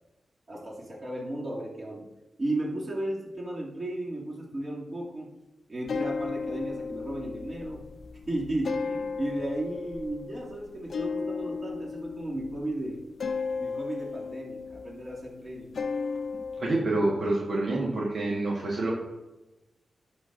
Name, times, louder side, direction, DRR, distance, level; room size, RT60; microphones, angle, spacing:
voice 1, 0.5-2.1 2.4-5.3 5.7-7.8 8.3-13.0 13.6-15.7, right 1 dB, 40° right, -4 dB, 2.4 m, -34 dB
sound 1, 5.9-16.8, left 5 dB, 65° left, 0.5 m, -35 dB
voice 2, 16.6-18.9, right 2 dB, 65° right, -4 dB, 1.5 m, -27 dB
11.5 x 6.4 x 2.6 m, 1.0 s
cardioid pair, 75°, 0 cm